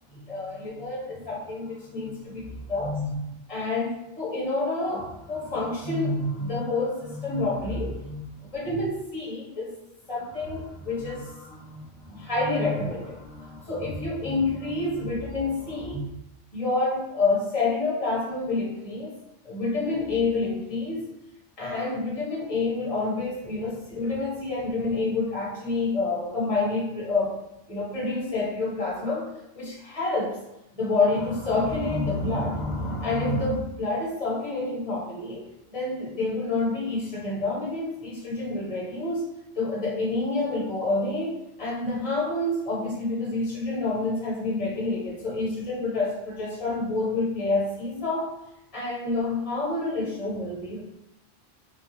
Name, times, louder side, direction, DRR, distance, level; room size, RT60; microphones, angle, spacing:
voice 1, 0.1-9.7 10.1-16.1 16.5-21.1 21.6-27.4 27.7-29.3 29.5-30.4 30.7-35.4 35.7-39.2 39.6-48.3 48.7-50.8, left 2 dB, 30° left, -5 dB, 1.2 m, -28 dB
3.6 x 2.7 x 3.2 m, 0.88 s
omnidirectional pair, 1.2 m